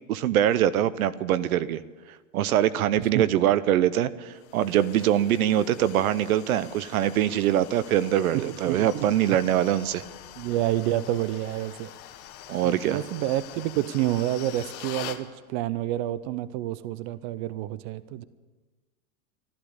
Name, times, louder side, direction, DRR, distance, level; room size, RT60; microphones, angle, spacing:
voice 1, 0.1-1.8 2.3-10.0 12.5-13.0, right 11 dB, 70° right, 17 dB, 0.8 m, -23 dB
sound 1, 4.4-15.2, left 12 dB, 50° left, 1.6 m, -44 dB
voice 2, 8.7-9.1 10.4-11.9 12.6-18.2, right 14 dB, 40° right, 17 dB, 0.7 m, -28 dB
14.0 x 12.0 x 8.0 m, 1.3 s
hypercardioid pair, 125°, 44 cm